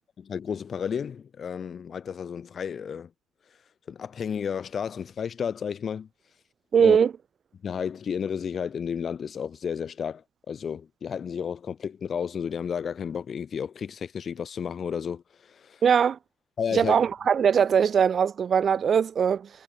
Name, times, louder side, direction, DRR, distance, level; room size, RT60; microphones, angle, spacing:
voice 1, 0.3-3.1 3.9-6.1 6.8-7.0 7.6-15.2 15.5-15.8 16.6-17.0, left 7 dB, 30° left, 3.1 m, -32 dB
voice 2, 6.7-7.1 15.8-16.2 16.7-19.5, right 7 dB, 30° right, 0.7 m, -21 dB
cardioid pair, 170°, 0 cm